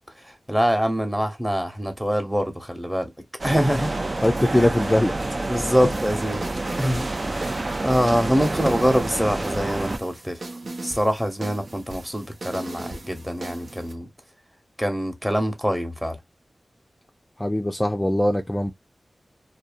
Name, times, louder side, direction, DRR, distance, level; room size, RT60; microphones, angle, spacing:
voice 1, 0.1-3.1 3.4-3.9 4.6-4.7 5.5-6.5 6.8-10.4 10.8-14.1 14.8-16.2, equal, 5° right, 1.0 m, -24 dB
sound 1, 3.4-10.0, right 2 dB, 50° right, 0.5 m, -28 dB
voice 2, 4.2-5.1 17.4-18.7, left 1 dB, 20° left, 0.5 m, -21 dB
sound 2, 5.9-13.9, right 2 dB, 70° right, 0.8 m, -39 dB
2.7 x 2.1 x 2.5 m
cardioid pair, 50°, 0 cm